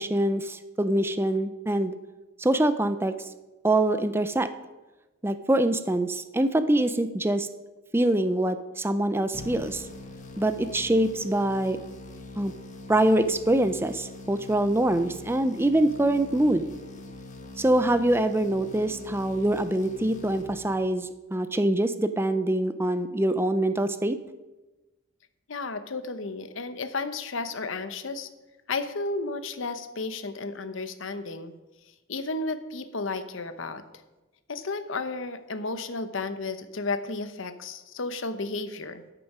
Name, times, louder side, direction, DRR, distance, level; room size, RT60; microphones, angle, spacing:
voice 1, 0.0-1.9 2.4-3.1 3.6-4.5 5.2-7.5 7.9-9.9 10.4-11.8 12.4-12.5 12.9-16.7 17.6-24.2, right 1 dB, 10° right, 10 dB, 0.4 m, -24 dB
sound 1, 9.3-21.1, left 2 dB, 40° left, 1.1 m, -43 dB
voice 2, 25.5-28.3 28.7-31.5 32.1-33.8 34.5-39.0, left 3 dB, 70° left, 11 dB, 0.9 m, -33 dB
12.5 x 6.9 x 5.5 m, 1.1 s
head